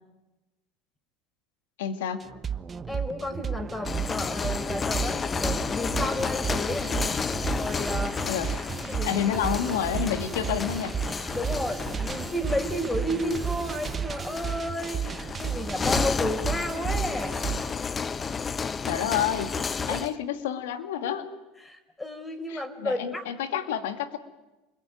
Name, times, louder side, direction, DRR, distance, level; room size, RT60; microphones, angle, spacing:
voice 1, 1.8-2.2 8.3-11.0 18.9-19.6 19.9-21.3 22.5-24.2, left 9 dB, 80° left, 8 dB, 2.3 m, -29 dB
sound 1, 2.2-17.7, right 7 dB, 30° right, 1.1 m, -33 dB
voice 2, 2.9-7.0 7.4-8.3 8.9-9.1 11.3-17.4 19.8-20.1 21.6-23.2, left 1 dB, 15° left, 6 dB, 4.5 m, -32 dB
sound 2, 3.7-20.2, left 5 dB, 30° left, 0.9 m, -32 dB
29.0 x 21.5 x 9.4 m, 1.1 s
hypercardioid pair, 80°, 0 cm